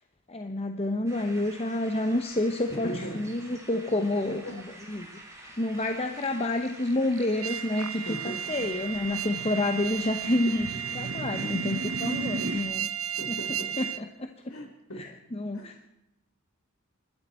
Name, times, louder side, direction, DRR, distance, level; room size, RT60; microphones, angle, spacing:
voice 1, 0.3-4.6 4.9-12.9 13.3-13.4 13.8-14.5 15.0-15.8, left 1 dB, 30° left, 5 dB, 0.9 m, -29 dB
sound 1, 1.1-12.6, right 1 dB, 15° right, 4.1 m, -47 dB
voice 2, 2.7-3.3 4.4-4.6 8.0-8.4 11.3-11.5 13.2-13.8 14.5-15.1 15.5-15.6, equal, 75° left, 4 dB, 4.2 m, -38 dB
sound 2, 5.9-6.0 6.2-6.3 6.6-7.3 7.7-12.6, right 2 dB, 65° right, 0.9 m, -37 dB
sound 3, 7.4-14.0, right 10 dB, 90° right, 1.0 m, -34 dB
25.0 x 13.0 x 4.4 m, 0.88 s
head